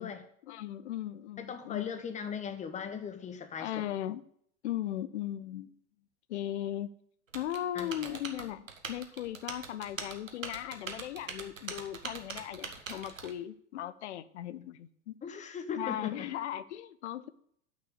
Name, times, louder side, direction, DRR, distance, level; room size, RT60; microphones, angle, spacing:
voice 1, 0.0-2.0 3.6-4.2 4.6-5.8 6.3-6.9 7.3-15.2 15.7-17.3, left 12 dB, 60° left, 16 dB, 0.7 m, -38 dB
voice 2, 1.4-3.7 7.7-8.2 15.2-16.3, left 7 dB, 20° left, 9 dB, 1.1 m, -39 dB
Typing, 7.3-13.3, right 4 dB, 85° right, 1.3 m, -42 dB
9.1 x 6.2 x 6.6 m, 0.65 s
figure-of-eight pair, 90°, 38 cm